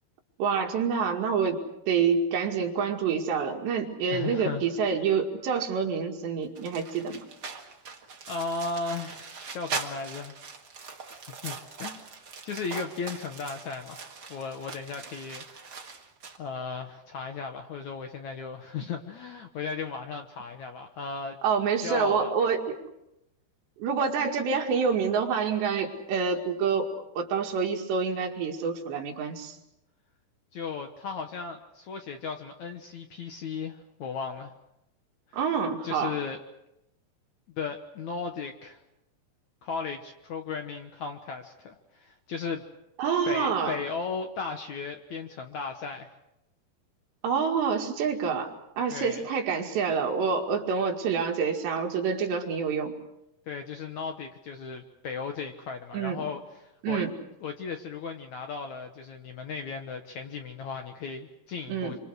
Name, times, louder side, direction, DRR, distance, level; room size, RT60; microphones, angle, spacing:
voice 1, 0.4-1.6 1.9-7.2 21.4-22.8 23.8-29.6 35.3-36.2 43.0-43.8 47.2-52.9 55.9-56.2 56.8-57.1 61.7-62.0, right 6 dB, 85° right, 2 dB, 4.4 m, -27 dB
voice 2, 4.1-4.6 8.3-10.4 11.1-12.0 12.4-15.8 16.4-21.4 21.8-22.3 30.5-34.5 35.8-36.4 37.6-38.8 39.6-42.6 43.3-46.1 48.9-49.2 53.5-57.0 57.4-62.0, left 5 dB, 65° left, 5 dB, 2.0 m, -36 dB
sound 1, 6.6-16.4, right 4 dB, 45° right, 1.3 m, -41 dB
27.0 x 25.0 x 6.4 m, 0.85 s
omnidirectional pair, 4.9 m